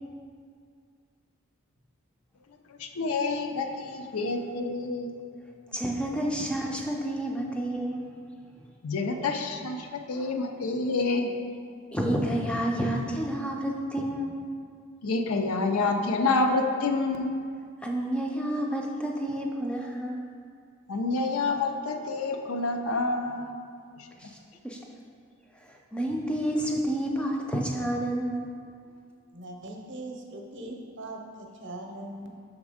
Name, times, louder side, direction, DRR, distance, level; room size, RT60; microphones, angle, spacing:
voice 1, 2.8-5.1 8.8-11.3 15.0-17.3 20.9-23.6 24.0-24.1, left 3 dB, 75° left, 5 dB, 0.5 m, -28 dB
voice 2, 5.7-8.0 9.5-9.7 10.1-10.3 11.9-14.4 17.8-20.2 24.2-24.4 24.6-24.8 25.5-28.4, right 1 dB, 5° left, 0 dB, 0.4 m, -30 dB
voice 3, 29.3-32.3, right 1 dB, 50° right, 2 dB, 0.7 m, -40 dB
6.1 x 3.7 x 4.9 m, 2.2 s
head